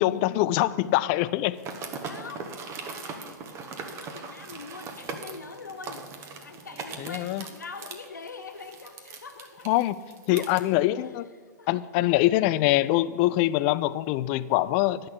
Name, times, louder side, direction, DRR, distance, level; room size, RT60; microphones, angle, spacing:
voice 1, 0.0-1.6 7.0-7.4 9.7-10.0 10.3-11.3 11.7-15.1, left 16 dB, 40° left, 17 dB, 0.5 m, -24 dB
sound 1, 1.6-10.6, right 4 dB, 30° right, 1.3 m, -39 dB
voice 2, 2.0-6.1 6.4-9.7 10.3-10.7 11.0-11.2 11.6-11.8, left 4 dB, 80° left, 5 dB, 1.4 m, -44 dB
10.5 x 6.4 x 8.6 m, 1.5 s
figure-of-eight pair, 105°, 10 cm